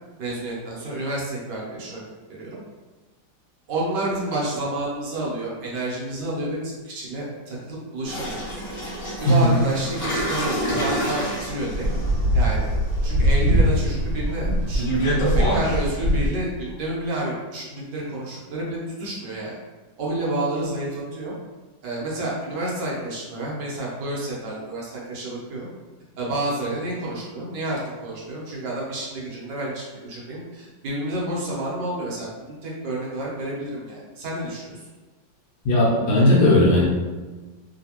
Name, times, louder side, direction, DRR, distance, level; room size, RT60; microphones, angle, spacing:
voice 1, 0.2-2.0 2.3-2.6 3.7-8.6 9.2-11.9 12.3-12.7 13.0-14.9 15.2-19.6 20.0-21.3 21.8-25.7 26.2-34.8, right 1 dB, 70° right, -5 dB, 1.4 m, -29 dB
sound 1, 8.0-16.3, equal, 30° left, 1.3 m, -23 dB
voice 2, 35.6-36.8, left 1 dB, 65° left, -4 dB, 1.3 m, -16 dB
3.2 x 2.8 x 2.9 m, 1.3 s
omnidirectional pair, 2.0 m